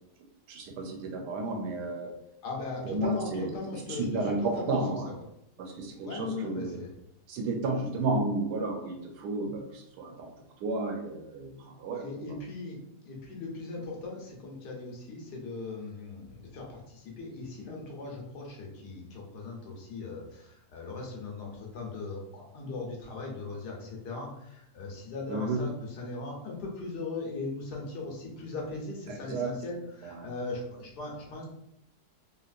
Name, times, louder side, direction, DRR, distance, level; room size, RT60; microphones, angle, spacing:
voice 1, 0.5-2.1 2.8-5.1 5.6-6.8 7.3-10.3 10.6-12.4 25.3-25.6 29.1-29.5 30.0-30.3, right 2 dB, 80° right, 2 dB, 1.2 m, -32 dB
voice 2, 2.4-4.8 5.9-6.9 12.0-12.8 13.0-25.7 26.0-31.5, left 3 dB, 80° left, -1 dB, 1.4 m, -39 dB
3.2 x 2.9 x 2.4 m, 0.79 s
omnidirectional pair, 1.8 m